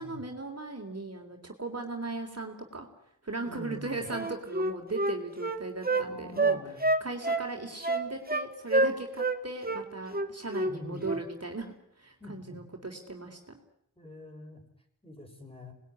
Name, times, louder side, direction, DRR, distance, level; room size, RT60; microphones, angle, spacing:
voice 1, 0.0-2.9 3.2-6.7 7.0-13.6, right 3 dB, 55° right, 3 dB, 3.6 m, -38 dB
voice 2, 3.5-4.1 5.9-6.8 10.7-11.1 12.2-12.7 14.0-14.6 15.0-15.7, left 1 dB, 20° left, 2 dB, 6.8 m, -45 dB
Wind instrument woodwind instrument, 4.1-6.1 6.4-7.5 7.8-8.5 8.7-9.4 9.6-9.8 10.1-10.7 11.0-11.2, right 2 dB, 30° right, 1.9 m, -27 dB
27.0 x 20.0 x 9.9 m, 0.77 s
wide cardioid pair, 55°, 31 cm